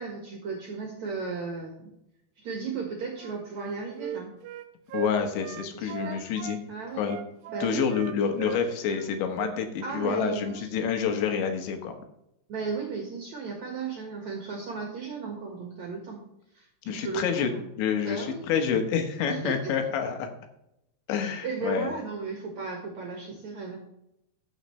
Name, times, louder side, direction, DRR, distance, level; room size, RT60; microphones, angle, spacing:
voice 1, 0.0-1.9 2.4-4.3 5.7-6.3 6.7-7.1 7.5-7.9 9.8-10.7 12.5-16.2 16.5-17.7 18.0-18.4 19.3-19.7 21.2-23.8, right 4 dB, 60° right, 0 dB, 2.0 m, -35 dB
Wind instrument woodwind instrument, 3.1-6.6 7.0-9.1 9.3-9.5 9.9-10.1 10.4-10.6, right 9 dB, 80° right, 2.7 m, -39 dB
voice 2, 4.9-6.6 7.0-7.2 7.6-12.0 16.9-17.5 17.8-20.3 21.1-21.9, left 7 dB, 80° left, 5 dB, 3.5 m, -28 dB
14.0 x 6.5 x 3.2 m, 0.82 s
omnidirectional pair, 5.2 m